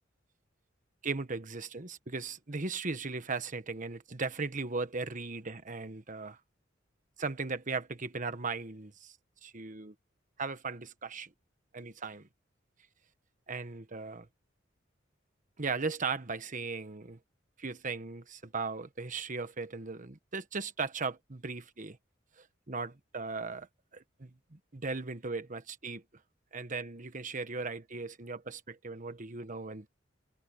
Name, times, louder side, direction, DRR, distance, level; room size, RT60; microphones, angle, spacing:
voice 1, 1.0-6.4 7.2-9.9 10.4-11.3 11.7-12.3 13.5-14.2 15.6-17.2 17.6-22.0 22.4-26.0 26.5-29.9, right 4 dB, 45° right, 1.3 m, -37 dB
head